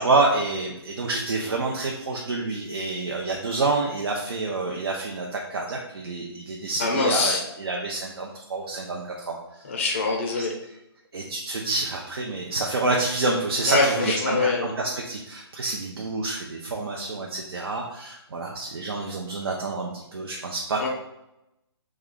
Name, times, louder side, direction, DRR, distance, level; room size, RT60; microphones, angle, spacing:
voice 1, 0.0-9.6 10.3-10.5 11.1-20.9, right 3 dB, 65° right, -1 dB, 0.6 m, -28 dB
voice 2, 6.8-7.4 9.6-10.5 13.7-14.7 20.8-20.9, left 3 dB, 25° left, 1 dB, 0.5 m, -24 dB
3.1 x 2.3 x 3.7 m, 0.87 s
hypercardioid pair, 170°, 14 cm